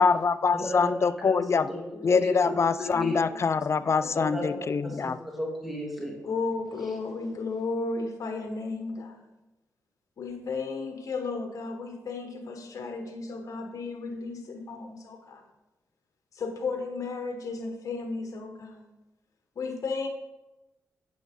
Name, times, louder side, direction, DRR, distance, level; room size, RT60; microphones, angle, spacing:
voice 1, 0.0-1.7 2.0-5.2, left 5 dB, 50° left, 15 dB, 0.5 m, -24 dB
voice 2, 0.5-3.2 4.1-6.2, left 1 dB, ahead, -1 dB, 2.5 m, -34 dB
voice 3, 1.4-1.7 1.9-2.1 2.5-2.6 2.9-3.1 3.8-4.2 4.5-4.6 6.2-9.2 10.2-15.4 16.3-18.8 19.6-20.1, left 4 dB, 65° left, 5 dB, 1.3 m, -34 dB
9.3 x 7.1 x 5.2 m, 1.0 s
cardioid pair, 60°, 6 cm